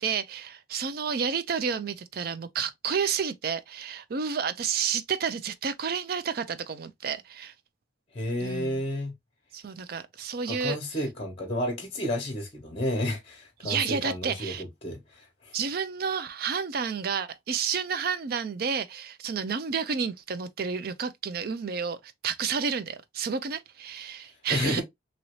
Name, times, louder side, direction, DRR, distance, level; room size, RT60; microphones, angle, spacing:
voice 1, 0.0-7.5 8.4-8.8 9.5-10.8 13.6-14.6 15.5-24.8, right 6 dB, 50° right, 0.4 m, -30 dB
voice 2, 8.1-9.1 10.5-15.6 24.5-24.8, left 1 dB, 30° left, 1.0 m, -31 dB
2.9 x 2.7 x 3.0 m
head